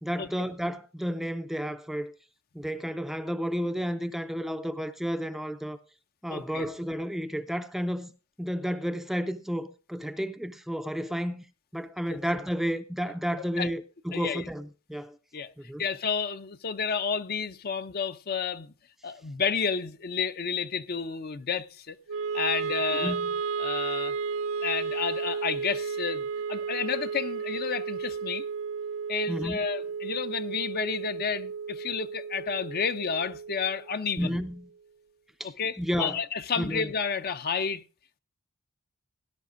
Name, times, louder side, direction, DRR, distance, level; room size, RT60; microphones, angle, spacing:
voice 1, 0.0-2.1 2.5-5.8 6.2-8.1 8.4-11.4 11.7-15.2 15.6-15.8 23.0-23.3 29.3-29.6 34.2-34.7 35.4-35.5 35.8-36.2 36.6-36.9, equal, ahead, 0.5 m, -32 dB
voice 2, 6.3-6.7 12.1-12.2 13.4-13.7 14.1-14.4 15.3-15.5 15.8-18.7 19.0-22.0 22.3-23.2 23.6-24.1 24.6-28.4 29.1-34.4 35.4-37.8, left 6 dB, 45° left, 0.6 m, -31 dB
Wind instrument woodwind instrument, 22.1-34.3, right 5 dB, 65° right, 0.5 m, -33 dB
18.0 x 11.0 x 2.6 m
head